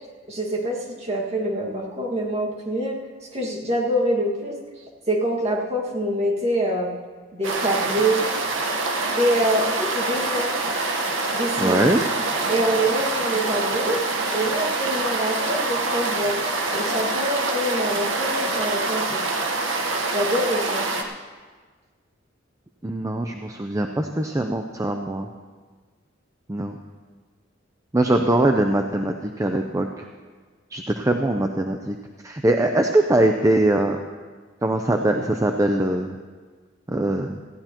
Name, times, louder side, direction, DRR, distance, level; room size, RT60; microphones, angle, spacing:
voice 1, 0.3-3.0 3.3-4.6 5.1-7.0 7.3-8.2 9.1-10.6 11.3-11.8 12.5-14.0 14.3-16.4 16.7-19.2 20.1-20.9, right 1 dB, 35° right, -2 dB, 1.9 m, -25 dB
sound 1, 7.4-21.0, right 3 dB, 80° right, 1.2 m, -25 dB
voice 2, 11.6-12.0 22.8-25.3 26.5-26.8 27.9-30.0 30.7-32.0 32.2-34.0 34.6-36.1 36.9-37.4, right 1 dB, 15° right, 4 dB, 0.5 m, -22 dB
19.0 x 14.5 x 3.0 m, 1.5 s
head